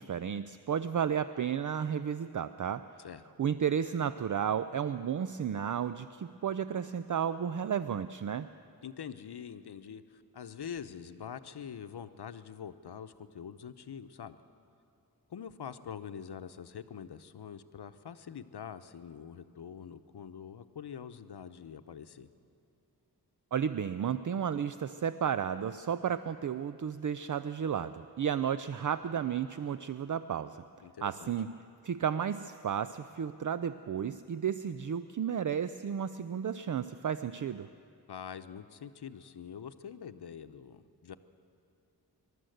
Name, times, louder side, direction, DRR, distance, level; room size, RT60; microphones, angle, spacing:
voice 1, 0.0-2.8 3.4-8.5 23.5-30.6 31.0-31.5 31.8-37.7, right 8 dB, 50° right, 13 dB, 0.5 m, -33 dB
voice 2, 8.8-14.4 15.3-22.3 30.8-31.3 38.1-41.2, left 7 dB, 80° left, 10 dB, 0.8 m, -45 dB
26.0 x 12.5 x 7.9 m, 2.7 s
wide cardioid pair, 95°, 39 cm